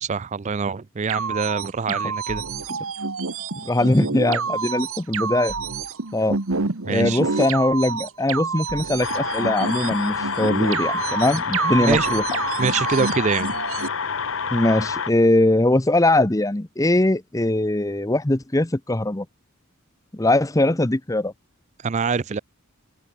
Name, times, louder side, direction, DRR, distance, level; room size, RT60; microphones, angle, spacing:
voice 1, 0.0-2.4 6.8-7.2 11.8-12.1 12.6-13.5 21.8-22.4, right 5 dB, 35° right, 0.4 m, -25 dB
sound 1, 1.1-13.9, right 4 dB, 80° right, 1.6 m, -28 dB
voice 2, 3.6-5.5 6.1-6.4 6.9-12.2 14.5-19.3 20.1-21.3, left 1 dB, 15° left, 0.8 m, -21 dB
sound 2, 9.0-15.1, left 5 dB, 70° left, 1.3 m, -28 dB
open air
head